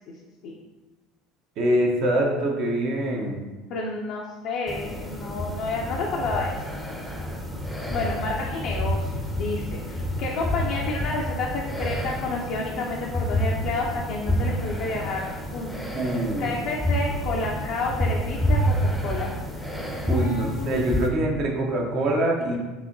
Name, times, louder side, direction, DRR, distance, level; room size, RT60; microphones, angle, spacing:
voice 1, 1.6-3.4 16.0-16.5 20.1-22.6, right 1 dB, 45° right, 0 dB, 0.6 m, -24 dB
voice 2, 3.7-6.5 7.7-15.3 15.5-15.7 16.0-19.3 19.5-19.7 20.0-20.9, left 3 dB, 50° left, -2 dB, 0.5 m, -30 dB
sound 1, 4.7-21.1, equal, ahead, 0.6 m, -29 dB
4.8 x 2.8 x 2.6 m, 1.2 s
figure-of-eight pair, 65°, 0 cm